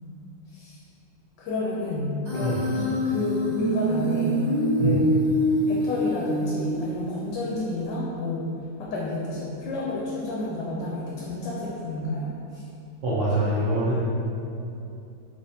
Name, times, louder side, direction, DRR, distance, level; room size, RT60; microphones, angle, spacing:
voice 1, 0.5-0.8 1.4-4.5 4.8-5.2 5.7-8.5 8.8-12.3, left 2 dB, 80° left, -5 dB, 1.2 m, -30 dB
Human voice, 2.2-7.2, equal, 30° right, 0.8 m, -25 dB
voice 2, 13.0-14.0, right 1 dB, 65° right, -10 dB, 0.8 m, -24 dB
3.4 x 3.1 x 2.7 m, 2.7 s
omnidirectional pair, 1.9 m